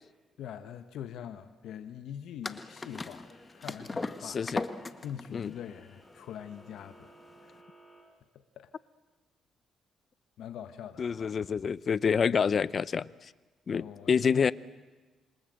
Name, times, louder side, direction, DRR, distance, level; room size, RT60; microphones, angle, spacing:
voice 1, 0.4-4.4 5.0-7.2 7.4-7.6 8.3-8.7 10.4-11.4 13.7-14.5, left 9 dB, 80° left, 1.3 m, -43 dB
sound 1, 2.4-7.6, left 3 dB, 25° left, 1.6 m, -39 dB
sound 2, 2.5-8.0, right 1 dB, 5° left, 7.0 m, -60 dB
voice 2, 11.0-13.1 13.7-14.5, left 6 dB, 45° left, 0.8 m, -27 dB
28.0 x 26.0 x 8.0 m
cardioid pair, 90°, 0 cm